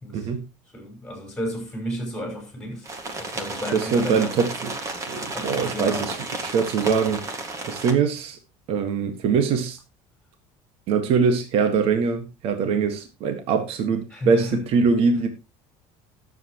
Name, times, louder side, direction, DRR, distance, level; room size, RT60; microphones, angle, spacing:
voice 1, 0.1-0.4 3.7-4.8 5.1-8.4 8.7-9.8 10.9-15.3, right 5 dB, 50° right, 1.6 m, -23 dB
voice 2, 0.7-2.9 3.2-4.3 5.0-6.1 14.1-14.6, equal, 5° left, 5.8 m, -33 dB
sound 1, 2.8-7.9, right 2 dB, 25° right, 1.9 m, -32 dB
19.5 x 7.8 x 3.0 m
cardioid pair, 170°, 13 cm